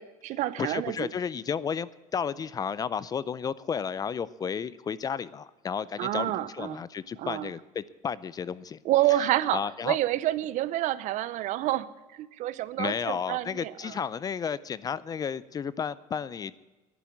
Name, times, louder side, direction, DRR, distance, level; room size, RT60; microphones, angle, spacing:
voice 1, 0.0-1.1 6.0-6.8 7.2-7.5 8.8-11.9 12.2-13.9, right 14 dB, 60° right, 0.8 m, -28 dB
voice 2, 0.6-8.8 9.1-9.2 9.5-10.0 12.8-16.6, left 7 dB, 25° left, 0.5 m, -32 dB
11.0 x 9.6 x 9.2 m
cardioid pair, 130°, 14 cm